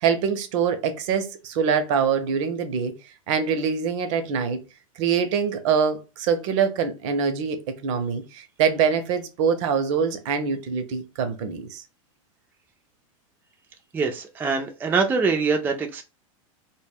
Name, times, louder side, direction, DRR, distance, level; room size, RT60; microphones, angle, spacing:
voice 1, 0.0-2.9 3.3-4.6 5.0-11.8, right 6 dB, 60° right, 0.6 m, -24 dB
voice 2, 13.9-16.0, right 4 dB, 10° right, 0.3 m, -24 dB
2.1 x 2.1 x 3.3 m
hypercardioid pair, 120°, 18 cm